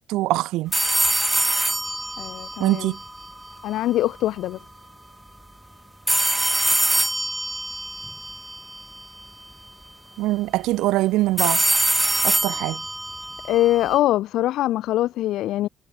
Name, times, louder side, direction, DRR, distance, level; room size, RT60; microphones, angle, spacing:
voice 1, 0.1-0.7 2.6-3.0 10.2-11.6 12.2-12.8, right 17 dB, 85° right, 0.8 m, -23 dB
sound 1, 0.7-3.8 6.1-9.2 11.4-14.0, right 1 dB, 5° right, 2.0 m, -24 dB
voice 2, 2.2-2.9 3.6-4.6 13.4-15.7, left 14 dB, 80° left, 2.0 m, -23 dB
cardioid pair, 90°, 0 cm